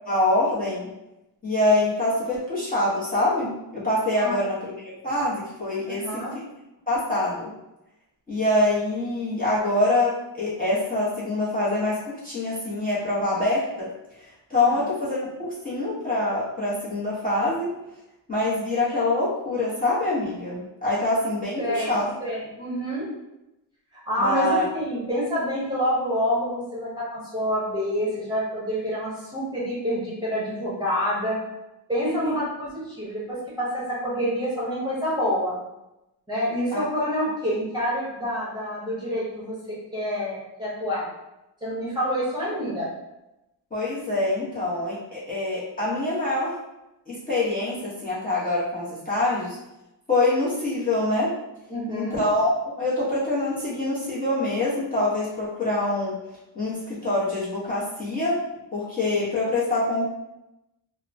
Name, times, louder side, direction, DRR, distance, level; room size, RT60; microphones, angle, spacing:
voice 1, 0.1-0.9 1.4-6.3 6.9-7.5 8.3-13.9 14.2-17.7 18.3-22.1 24.2-24.6 32.0-32.3 36.7-36.8 43.7-46.6 47.1-49.6 50.1-51.3 51.9-52.5 52.8-56.2 56.5-58.4 58.7-60.1, left 2 dB, 20° left, -10 dB, 0.9 m, -25 dB
voice 2, 5.9-6.3 21.6-21.9 22.2-23.1 24.1-31.4 31.9-35.5 36.3-39.5 39.9-41.1 41.6-42.9 51.7-52.2, equal, 10° right, -8 dB, 0.9 m, -27 dB
2.8 x 2.1 x 2.6 m, 0.92 s
cardioid pair, 125°, 44 cm